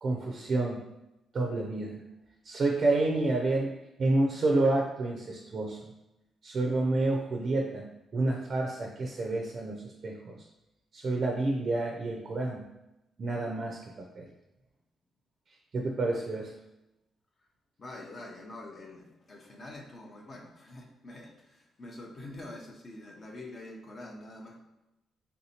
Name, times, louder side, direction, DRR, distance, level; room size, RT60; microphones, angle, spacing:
voice 1, 0.0-0.8 1.3-2.0 2.4-3.7 4.0-5.8 6.4-7.9 8.1-10.4 10.9-12.6 13.2-14.3 15.7-16.5, right 2 dB, 50° right, 1 dB, 0.4 m, -29 dB
voice 2, 17.8-24.6, left 1 dB, 40° left, 0 dB, 0.6 m, -45 dB
3.4 x 2.7 x 2.8 m, 0.95 s
cardioid pair, 90°, 0 cm